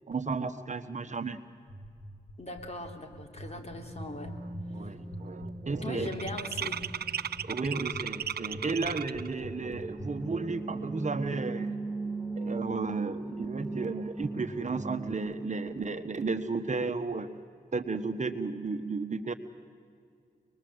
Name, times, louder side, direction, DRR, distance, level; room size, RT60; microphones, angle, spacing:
voice 1, 0.1-1.4 4.7-6.1 7.4-11.8 12.4-17.3 17.7-19.3, right 4 dB, 45° right, 8 dB, 1.3 m, -33 dB
sound 1, 1.7-10.1, equal, 65° left, 3.3 m, -43 dB
voice 2, 2.4-4.4 4.7-4.9 5.8-6.8, left 2 dB, 40° left, 3 dB, 3.4 m, -40 dB
sound 2, 3.7-15.1, right 3 dB, 5° right, 1.3 m, -40 dB
sound 3, 3.7-3.8 4.1-4.5 4.7-9.3, right 8 dB, 65° right, 0.5 m, -36 dB
25.0 x 21.0 x 8.0 m, 2.2 s
cardioid pair, 60°, 18 cm